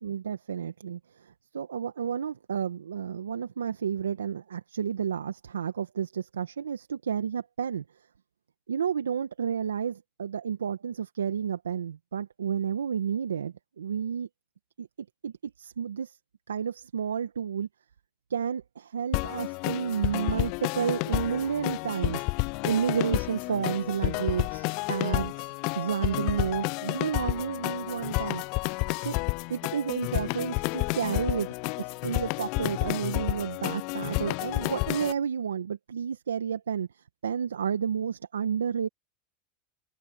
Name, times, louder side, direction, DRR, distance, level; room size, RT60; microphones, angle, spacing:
voice 1, 0.0-7.8 8.7-14.3 14.8-14.9 15.2-16.2 16.5-17.7 18.3-22.2 22.6-25.3 25.8-28.4 29.0-29.2 29.5-36.9 37.2-38.9, right 7 dB, 85° right, 1.7 m, -31 dB
sound 1, 19.1-35.1, left 31 dB, 55° left, 0.3 m, -30 dB
hypercardioid pair, 90°, 0 cm